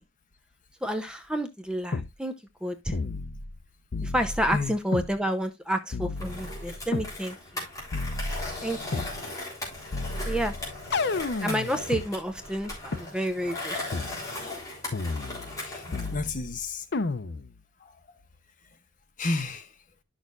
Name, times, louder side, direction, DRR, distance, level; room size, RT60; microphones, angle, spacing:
voice 1, 0.8-2.3 2.6-2.9 4.0-7.4 8.6-9.0 10.2-10.5 11.4-14.0, equal, 5° right, 0.7 m, -30 dB
sound 1, 1.9-2.1 2.9-3.6 3.9-5.1 5.9-7.1 7.9-9.1 9.9-12.1 12.9-13.0 13.9-14.1 14.9-15.6 15.9-16.5 16.9-17.5, left 3 dB, 60° left, 0.7 m, -32 dB
Skateboard, 6.2-16.2, left 2 dB, 15° left, 3.7 m, -38 dB
voice 2, 15.5-16.8 17.8-18.0 19.2-19.7, left 3 dB, 40° left, 1.0 m, -32 dB
11.0 x 6.4 x 2.5 m
head